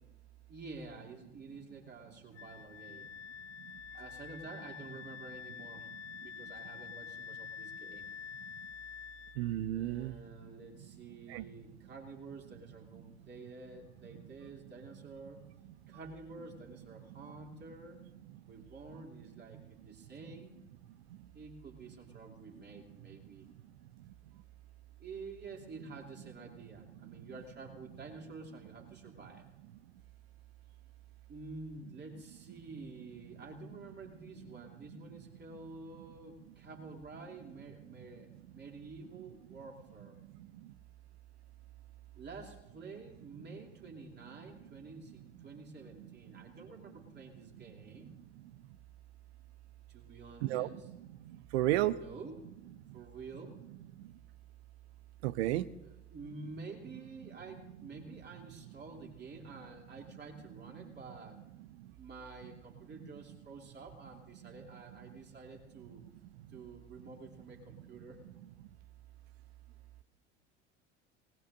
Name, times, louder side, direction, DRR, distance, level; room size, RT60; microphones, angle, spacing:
voice 1, 0.5-3.1 3.9-8.0 9.7-15.4 15.9-18.0 18.4-20.6 21.3-23.5 25.0-29.4 31.3-40.2 42.1-48.1 49.9-50.9 51.7-52.4 52.9-53.6 55.8-61.4 61.9-66.0 66.5-68.2, right 3 dB, 30° right, 1 dB, 3.0 m, -50 dB
Wind instrument woodwind instrument, 2.4-9.4, left 7 dB, 75° left, 0.7 m, -47 dB
voice 2, 9.4-10.1 11.3-11.4 50.4-50.7 51.5-52.0 55.2-55.6, right 15 dB, 60° right, 17 dB, 0.8 m, -31 dB
26.0 x 18.5 x 2.7 m, 0.93 s
figure-of-eight pair, 65°, 35 cm